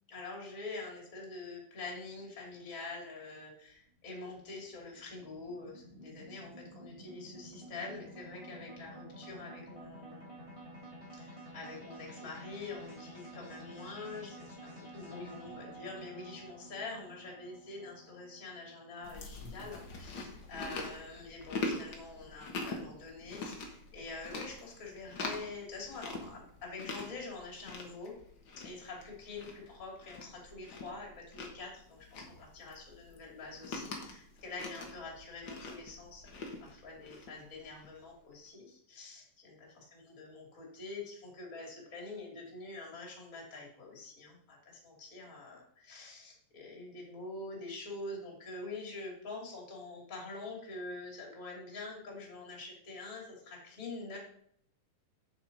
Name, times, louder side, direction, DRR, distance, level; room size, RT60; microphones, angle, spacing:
voice 1, 0.1-10.3 11.1-28.1 28.6-54.2, left 3 dB, 25° left, -2 dB, 2.6 m, -45 dB
sound 1, 3.7-20.1, right 1 dB, 10° right, 2.2 m, -51 dB
Chewing mastication, 19.0-38.0, left 3 dB, 55° left, 1.3 m, -44 dB
8.0 x 7.9 x 4.0 m, 0.68 s
omnidirectional pair, 4.1 m